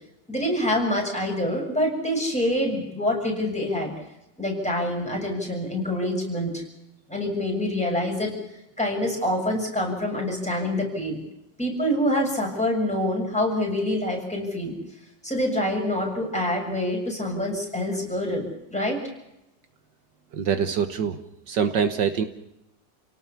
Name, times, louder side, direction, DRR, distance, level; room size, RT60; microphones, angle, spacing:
voice 1, 0.3-3.9 4.4-6.6 7.1-8.3 8.8-11.2 11.6-14.8 15.2-19.0, left 1 dB, 5° left, -1 dB, 7.0 m, -26 dB
voice 2, 20.3-21.2 21.5-22.2, right 7 dB, 75° right, 8 dB, 1.8 m, -24 dB
29.0 x 18.0 x 7.1 m, 0.88 s
omnidirectional pair, 2.0 m